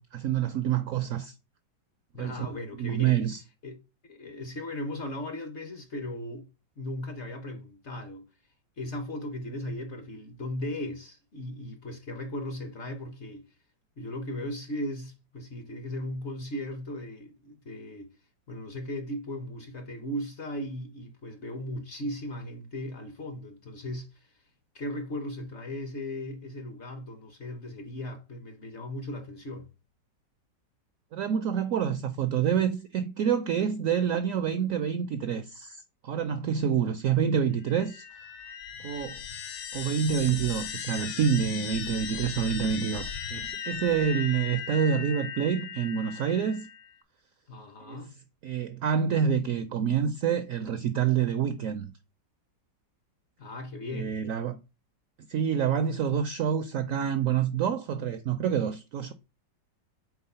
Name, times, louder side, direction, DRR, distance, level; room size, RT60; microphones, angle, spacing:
voice 1, 0.0-1.3 2.2-2.4 2.8-3.4 31.1-38.0 38.8-39.2 39.7-46.7 47.9-48.0 48.4-51.9 53.9-54.6 55.3-59.1, right 8 dB, 75° right, 0.7 m, -27 dB
voice 2, 2.1-3.2 3.6-3.8 4.1-6.5 6.8-8.3 8.8-13.5 14.0-18.1 18.5-24.4 24.7-29.7 47.5-48.1 53.4-54.1, left 1 dB, 55° left, 0.8 m, -37 dB
sound 1, 37.6-46.9, left 7 dB, 90° left, 1.5 m, -37 dB
4.7 x 4.0 x 5.3 m
omnidirectional pair, 1.9 m